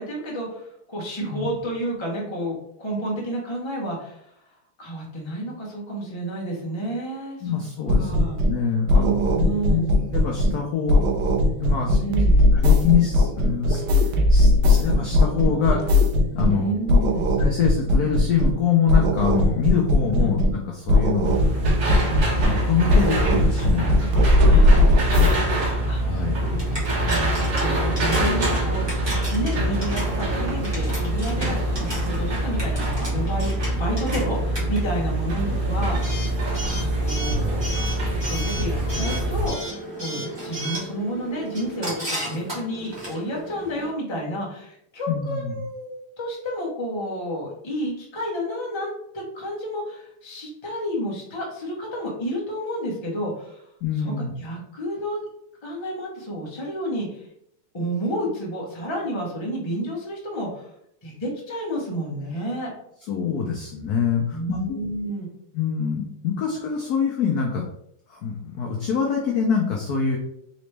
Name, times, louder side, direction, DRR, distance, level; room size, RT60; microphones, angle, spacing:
voice 1, 0.0-4.3 4.8-7.6 8.0-8.4 8.9-9.9 12.0-12.4 16.4-17.3 20.1-20.3 24.4-24.9 25.8-26.2 27.0-28.9 29.3-37.7 38.2-39.6 40.0-53.6 54.0-55.2 55.6-57.3 57.7-60.7 61.0-62.7 64.3-65.3, right 1 dB, 20° left, -3 dB, 0.7 m, -30 dB
voice 2, 7.4-8.2 8.5-9.1 9.7-9.8 10.1-11.1 11.6-12.0 12.6-15.9 16.3-16.7 17.4-21.3 22.4-24.6 25.2-25.4 26.0-26.7 35.5-35.9 45.1-45.5 53.8-54.3 63.1-64.8 65.5-67.7 68.1-70.2, left 7 dB, 80° left, 0 dB, 0.8 m, -25 dB
sound 1, 7.9-8.6 8.9-10.6 10.9-16.6 16.9-18.6 18.9-20.6 20.9-22.6 22.9-25.3, left 1 dB, 75° right, 1.0 m, -19 dB
sound 2, 21.2-39.5, right 1 dB, 50° right, 1.5 m, -25 dB
Coin (dropping) / Alarm, 26.4-43.9, right 1 dB, 15° right, 1.0 m, -35 dB
4.0 x 3.1 x 3.3 m, 0.73 s
omnidirectional pair, 2.4 m